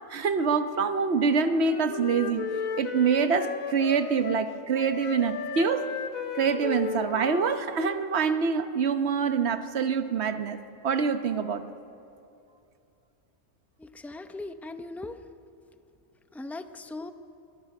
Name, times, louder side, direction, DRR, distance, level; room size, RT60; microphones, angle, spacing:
voice 1, 0.1-2.5 2.8-5.9 6.3-10.6 10.8-11.7, right 5 dB, 55° right, 9 dB, 1.2 m, -25 dB
Wind instrument woodwind instrument, 1.0-8.6, left 5 dB, 75° left, 1.4 m, -35 dB
voice 2, 13.8-15.2 16.3-17.1, left 2 dB, ahead, 9 dB, 0.4 m, -39 dB
26.5 x 20.5 x 6.0 m, 2.6 s
omnidirectional pair, 1.4 m